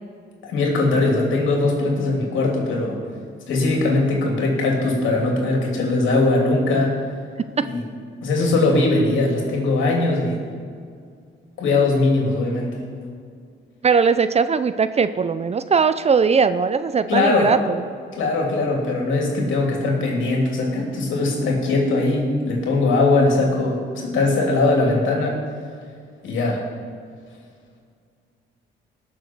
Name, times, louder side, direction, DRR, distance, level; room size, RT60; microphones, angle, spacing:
voice 1, 0.4-3.0 3.5-6.9 7.6-7.8 8.2-10.4 11.6-12.7 17.1-17.5 18.2-25.4 26.2-26.6, left 2 dB, 75° left, -1 dB, 3.0 m, -20 dB
voice 2, 13.8-17.8, right 5 dB, 35° right, 12 dB, 0.5 m, -19 dB
18.5 x 6.9 x 4.6 m, 2.2 s
cardioid pair, 90°, 20 cm